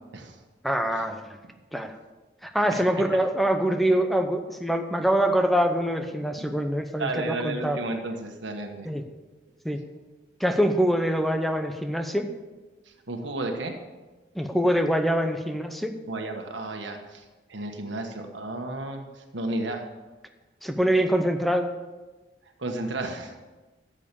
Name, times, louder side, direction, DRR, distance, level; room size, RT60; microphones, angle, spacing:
voice 1, 0.6-1.4 1.7-2.0 2.4-7.8 8.8-9.1 9.6-9.8 10.4-12.3 14.3-16.0 20.6-21.7, equal, ahead, 6 dB, 0.7 m, -24 dB
voice 2, 7.0-8.9 12.9-13.7 16.1-17.2 17.5-19.8 22.6-23.4, right 2 dB, 90° right, 3 dB, 1.4 m, -33 dB
13.5 x 7.5 x 6.9 m, 1.2 s
head